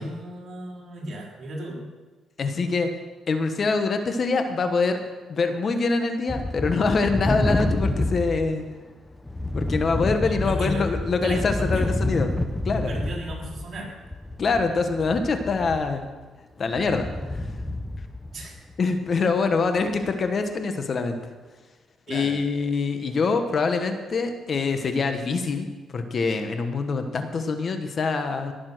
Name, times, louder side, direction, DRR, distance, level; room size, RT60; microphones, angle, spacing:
voice 1, 0.0-1.9 10.2-10.9 11.2-11.9 12.9-13.9 18.3-18.5 22.1-22.4, right 1 dB, 55° right, -2 dB, 4.2 m, -35 dB
voice 2, 2.4-2.9 3.3-5.0 5.3-8.6 9.5-12.3 12.6-12.9 14.4-16.0 16.6-17.1 18.8-21.2 22.1-25.7 25.9-28.5, left 4 dB, 45° left, 7 dB, 1.4 m, -24 dB
sound 1, 6.3-8.6 9.1-16.1 16.7-18.7 19.1-19.2 19.8-20.1, left 1 dB, 10° left, 0.9 m, -28 dB
18.0 x 7.3 x 6.3 m, 1.3 s
cardioid pair, 90°, 0 cm